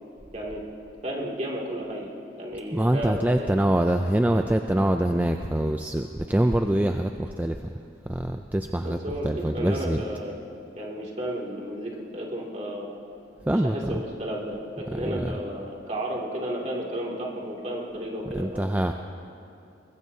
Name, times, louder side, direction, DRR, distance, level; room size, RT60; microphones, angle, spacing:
voice 1, 1.0-2.1 2.3-3.5 8.8-10.3 10.8-12.9 13.5-18.7, equal, 35° right, -2 dB, 2.5 m, -33 dB
voice 2, 2.7-7.7 8.1-9.0 9.2-10.0 13.4-14.0 14.9-15.4 18.3-18.9, right 1 dB, 10° right, 5 dB, 0.3 m, -24 dB
24.0 x 21.0 x 2.8 m, 2.6 s
head